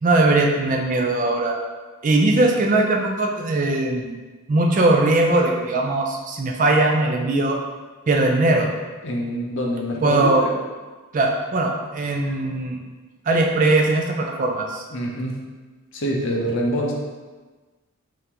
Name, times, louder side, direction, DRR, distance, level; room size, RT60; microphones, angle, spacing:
voice 1, 0.0-1.6 2.0-4.2 4.5-7.6 8.1-8.7 10.0-10.5 11.1-12.8 13.3-14.8, right 2 dB, 35° right, 1 dB, 0.4 m, -20 dB
voice 2, 9.0-10.5 14.9-15.4 15.9-16.9, equal, 55° left, 0 dB, 0.6 m, -25 dB
3.7 x 3.3 x 2.8 m, 1.3 s
head